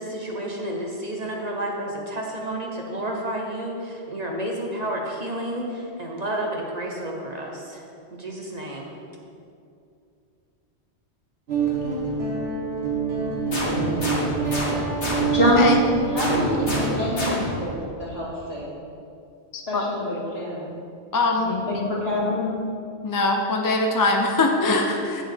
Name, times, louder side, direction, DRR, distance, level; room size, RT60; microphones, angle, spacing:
voice 1, 0.0-7.8 8.2-8.9, right 1 dB, 40° right, 0 dB, 0.8 m, -30 dB
Guitar, 11.5-17.1, right 5 dB, 70° right, 1.7 m, -26 dB
sound 1, 13.5-15.6 16.2-17.7, left 1 dB, 85° left, 1.9 m, -28 dB
voice 2, 13.6-14.4 15.3-15.7 16.1-18.8 19.7-20.7 21.4-22.6, left 1 dB, 65° left, -6 dB, 2.2 m, -25 dB
voice 3, 19.5-19.8 21.1-21.5 23.0-25.2, left 2 dB, 30° left, 2 dB, 0.4 m, -22 dB
8.7 x 7.4 x 3.5 m, 2.5 s
omnidirectional pair, 1.1 m